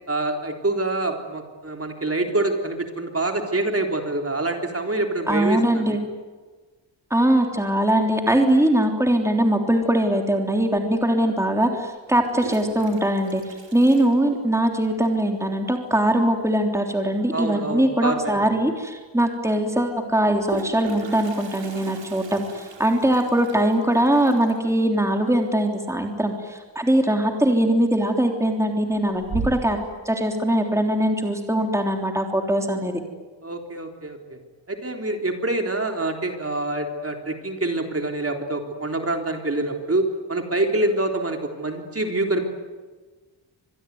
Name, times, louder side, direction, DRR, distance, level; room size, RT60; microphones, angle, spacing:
voice 1, 0.1-6.0 17.3-18.5 33.4-34.4 34.7-42.4, right 2 dB, 30° right, 3 dB, 3.7 m, -26 dB
voice 2, 5.3-6.0 7.1-29.8 30.1-33.0, right 1 dB, 5° right, 3 dB, 3.3 m, -21 dB
Toilet flush, 10.8-10.9 12.1-14.9 15.1-15.2 15.5-15.6 15.9-16.3 18.0-18.1 18.5-18.6 20.1-26.8 27.1-27.5 28.0-28.5 28.9-29.9, right 4 dB, 75° right, 4.9 m, -38 dB
26.0 x 21.5 x 9.5 m, 1.4 s
wide cardioid pair, 85°, 44 cm